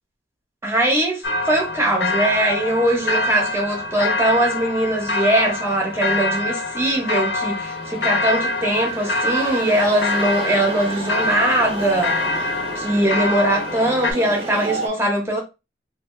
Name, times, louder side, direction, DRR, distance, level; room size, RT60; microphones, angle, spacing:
voice 1, 0.6-15.4, right 1 dB, 15° right, 1.0 m, -21 dB
sound 1, 1.2-14.1, left 2 dB, 65° left, 0.6 m, -25 dB
sound 2, 3.2-14.9, right 2 dB, 30° right, 0.6 m, -34 dB
2.8 x 2.3 x 3.1 m
head